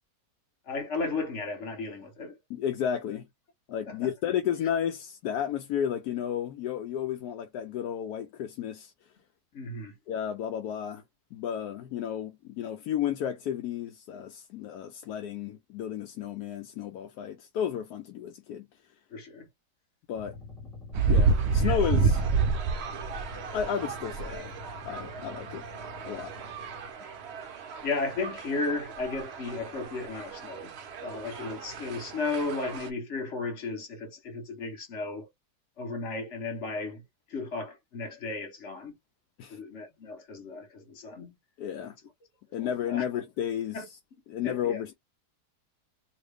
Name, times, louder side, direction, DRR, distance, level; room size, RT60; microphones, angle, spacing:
voice 1, 0.7-2.4 3.9-4.1 9.5-10.0 19.1-19.5 21.6-22.1 27.8-30.7 31.0-35.3 35.8-37.0 37.3-39.0 39.5-41.4 42.6-43.0 43.7-43.9 44.4-44.8, left 3 dB, 50° left, 1.3 m, -34 dB
voice 2, 2.5-3.3 3.7-8.9 10.1-11.0 11.3-18.7 20.1-20.4 21.1-22.2 23.5-24.6 24.9-25.6 26.0-26.3 39.4-39.6 41.6-42.0 42.5-43.8 44.3-44.9, left 9 dB, 75° left, 1.0 m, -32 dB
sound 1, 20.1-26.9, left 4 dB, ahead, 1.1 m, -46 dB
sound 2, 20.9-32.9, right 4 dB, 70° right, 0.6 m, -30 dB
3.0 x 2.5 x 3.3 m
omnidirectional pair, 1.8 m